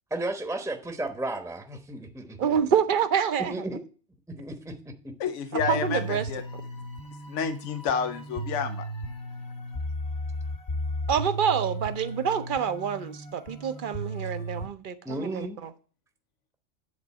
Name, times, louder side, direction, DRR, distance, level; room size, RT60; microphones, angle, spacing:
voice 1, 0.1-2.5 3.5-3.8 4.3-4.8 5.0-5.1 15.0-15.6, right 1 dB, 5° right, 0.9 m, -34 dB
voice 2, 2.4-3.5 5.7-6.3 11.1-15.7, right 7 dB, 50° right, 0.8 m, -27 dB
voice 3, 5.2-6.4 7.3-8.8, left 6 dB, 85° left, 1.0 m, -29 dB
sound 1, 5.6-14.7, equal, 60° left, 1.8 m, -35 dB
9.5 x 3.9 x 7.3 m
omnidirectional pair, 1.2 m